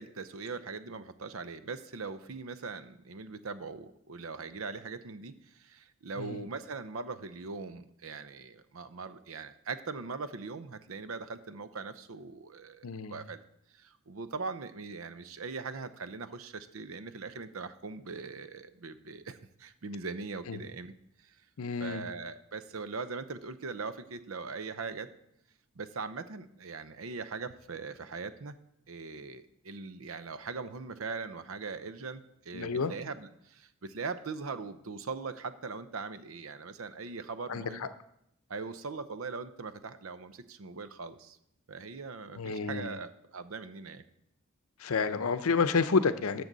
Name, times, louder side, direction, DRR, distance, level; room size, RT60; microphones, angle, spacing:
voice 1, 0.0-13.4 13.7-20.9 21.2-21.4 21.8-25.1 25.8-28.5 28.9-37.9 38.5-41.4 41.7-44.0, right 4 dB, 70° right, 12 dB, 0.7 m, -41 dB
voice 2, 12.8-13.1 20.5-20.6 21.6-22.1 32.5-32.9 37.5-37.9 42.4-42.9 44.8-46.4, left 5 dB, 90° left, 12 dB, 0.6 m, -29 dB
13.5 x 6.8 x 4.0 m, 0.78 s
head